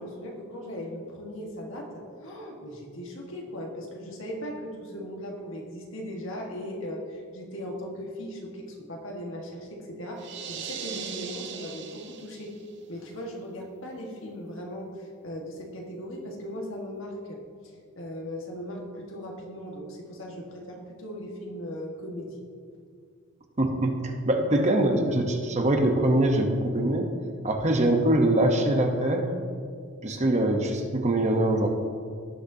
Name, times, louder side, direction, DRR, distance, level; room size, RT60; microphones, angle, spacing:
voice 1, 0.0-12.6 12.9-22.4, equal, 65° left, 0 dB, 1.6 m, -38 dB
sound 1, 10.2-12.7, right 7 dB, 55° right, 0.7 m, -38 dB
voice 2, 23.6-27.1 27.4-29.3 30.0-31.7, right 1 dB, 35° right, 4 dB, 0.9 m, -23 dB
18.0 x 6.5 x 2.8 m, 2.2 s
head